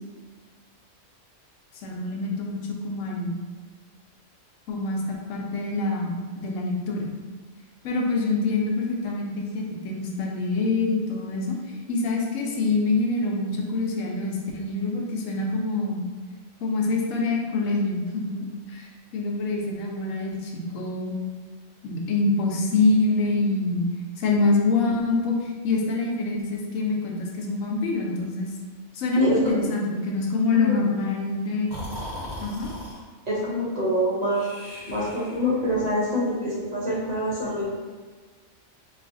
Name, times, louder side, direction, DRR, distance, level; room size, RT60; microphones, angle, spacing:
voice 1, 1.8-2.6 2.8-3.4 4.7-7.1 7.8-16.0 16.6-21.1 21.8-23.9 24.2-28.5 28.9-31.7 32.4-32.7, left 3 dB, 80° left, 0 dB, 1.0 m, -25 dB
Breathing, 31.7-33.0 34.3-35.6, equal, 55° left, 1.1 m, -37 dB
voice 2, 33.3-37.6, equal, 40° right, -8 dB, 0.7 m, -25 dB
3.9 x 2.4 x 2.5 m, 1.4 s
omnidirectional pair, 1.3 m